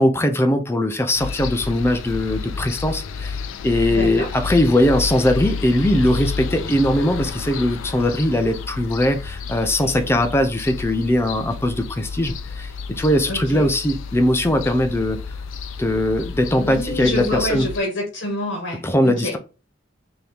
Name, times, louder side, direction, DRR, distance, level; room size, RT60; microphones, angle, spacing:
voice 1, 0.0-3.4 3.6-15.2 15.8-17.7 18.8-19.4, left 1 dB, 10° left, 0.4 m, -20 dB
sound 1, 1.1-17.8, left 5 dB, 85° left, 0.4 m, -31 dB
voice 2, 3.9-4.3 13.3-13.7 16.5-19.3, left 1 dB, 60° left, 1.2 m, -27 dB
4.0 x 2.9 x 3.4 m
head